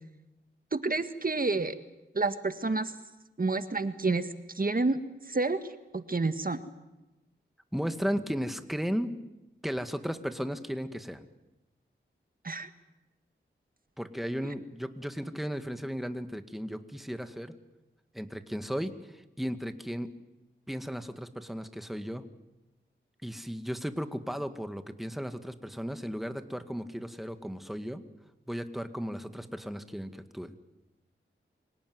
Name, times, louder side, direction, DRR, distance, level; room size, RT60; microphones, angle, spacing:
voice 1, 0.7-1.8 2.2-2.9 3.4-4.3 4.6-5.0 5.3-5.6 5.9-6.6 12.4-12.7, right 3 dB, 45° right, 10 dB, 1.7 m, -29 dB
voice 2, 7.7-9.1 9.6-11.3 14.0-17.5 18.1-20.1 20.7-22.2 23.2-28.0 28.5-30.5, equal, ahead, 8 dB, 1.9 m, -35 dB
25.5 x 18.0 x 9.5 m, 1.0 s
cardioid pair, 50°, 21 cm